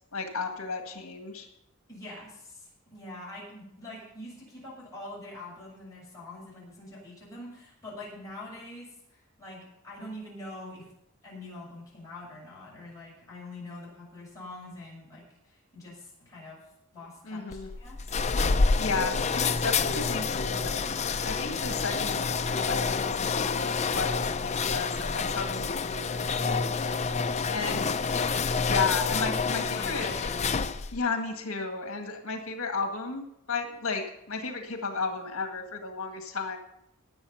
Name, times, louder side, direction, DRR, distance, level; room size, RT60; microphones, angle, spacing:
voice 1, 0.1-1.5 17.3-17.7 18.8-20.8 21.2-22.2 22.5-26.6 27.5-28.0 28.6-30.1 30.9-36.6, left 4 dB, 65° left, 4 dB, 1.9 m, -33 dB
voice 2, 1.9-10.9 11.2-16.6 16.9-18.2 27.7-27.9 29.6-30.6, left 1 dB, 15° left, -7 dB, 7.0 m, -44 dB
sound 1, 17.5-31.0, left 4 dB, 30° left, 0.5 m, -28 dB
19.0 x 7.2 x 5.7 m, 0.80 s
head